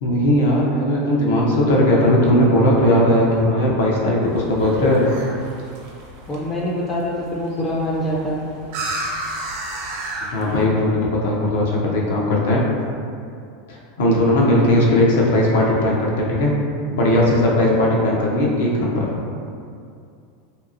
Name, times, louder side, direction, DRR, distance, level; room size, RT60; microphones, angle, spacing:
voice 1, 0.0-5.1 10.3-12.6 13.7-16.5 16.9-19.2, left 1 dB, 80° left, -3 dB, 0.6 m, -18 dB
sound 1, 4.2-10.6, right 1 dB, 60° right, 0.5 m, -33 dB
voice 2, 6.3-8.4, equal, 25° left, -5 dB, 0.3 m, -24 dB
2.8 x 2.6 x 2.5 m, 2.4 s
supercardioid pair, 130°, 0 cm